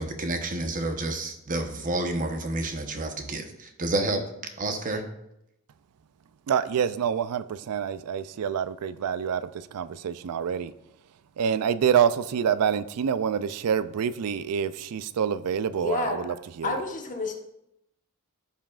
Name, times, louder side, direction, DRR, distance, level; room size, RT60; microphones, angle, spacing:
voice 1, 0.0-4.2 4.6-5.0, right 2 dB, 40° right, 5 dB, 1.0 m, -29 dB
voice 2, 6.5-10.7 11.4-16.8, right 8 dB, 90° right, 14 dB, 0.4 m, -27 dB
voice 3, 15.8-16.4 16.6-17.3, left 3 dB, 35° left, 2 dB, 1.2 m, -30 dB
15.0 x 5.6 x 2.4 m, 0.83 s
head